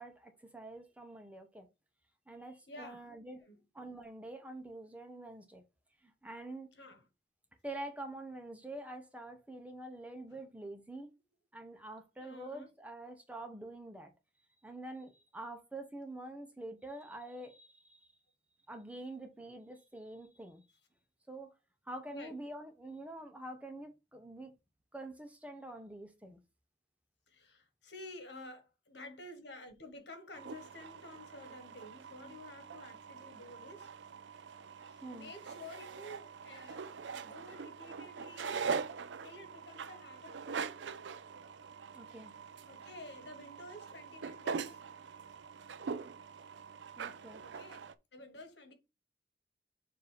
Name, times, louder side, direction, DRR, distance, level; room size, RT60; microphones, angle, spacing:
voice 1, 0.0-1.7 2.3-3.5 3.7-5.6 6.0-6.7 7.6-11.1 11.5-14.1 14.6-18.1 18.7-20.6 21.3-21.5 21.9-24.5 24.9-26.4 35.0-35.3 41.9-42.3 47.0-47.4, right 1 dB, 10° right, 0.8 m, -46 dB
voice 2, 2.7-3.6 6.7-7.1 10.3-10.4 12.2-12.7 22.1-22.3 27.3-33.9 34.8-38.7 39.2-40.7 42.7-44.8 47.4-48.7, left 1 dB, 75° left, 1.6 m, -51 dB
sound 1, 30.3-47.9, right 5 dB, 90° right, 0.5 m, -43 dB
7.1 x 2.7 x 5.1 m
head